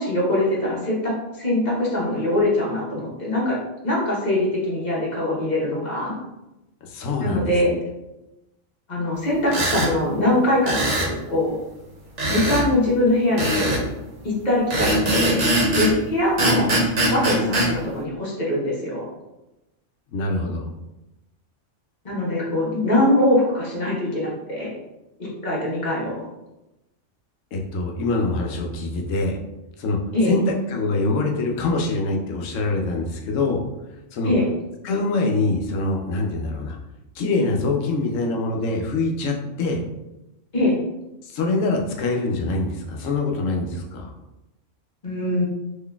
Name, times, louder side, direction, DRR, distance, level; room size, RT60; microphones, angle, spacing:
voice 1, 0.0-3.6 3.8-6.1 7.2-7.8 8.9-11.6 12.3-13.9 14.2-15.4 15.7-16.7 17.1-19.1 22.0-24.7 25.4-26.2 30.1-30.3 34.2-34.5 40.5-40.7 45.0-45.4, left 1 dB, 35° left, -6 dB, 1.1 m, -22 dB
voice 2, 6.8-7.5 20.1-20.6 27.5-29.4 29.8-30.0 30.2-33.6 34.1-34.3 34.8-36.8 37.1-39.8 41.2-44.1, left 3 dB, 80° left, 1 dB, 1.0 m, -24 dB
sound 1, 9.5-9.9 10.7-11.1 12.2-12.7 13.4-13.8 14.7-16.0 16.4-17.7, right 1 dB, 70° right, 1.3 m, -21 dB
3.8 x 3.1 x 2.3 m, 0.97 s
omnidirectional pair, 1.3 m